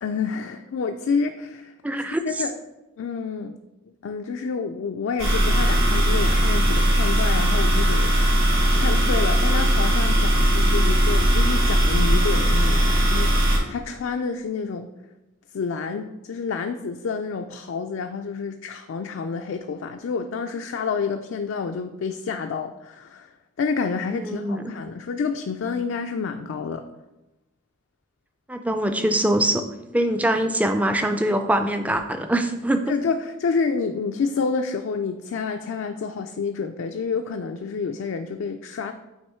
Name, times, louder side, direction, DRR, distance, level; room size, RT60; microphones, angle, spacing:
voice 1, 0.0-1.7 2.2-2.6 3.0-3.6 4.0-14.9 15.5-26.9 32.9-38.9, left 5 dB, 70° left, 6 dB, 0.3 m, -29 dB
voice 2, 1.8-2.2 24.1-24.6 28.5-29.6 29.9-32.8, right 1 dB, 5° right, 7 dB, 0.3 m, -23 dB
sound 1, 5.2-13.6, right 1 dB, 85° right, 1.8 m, -19 dB
8.8 x 3.0 x 4.3 m, 1.0 s
head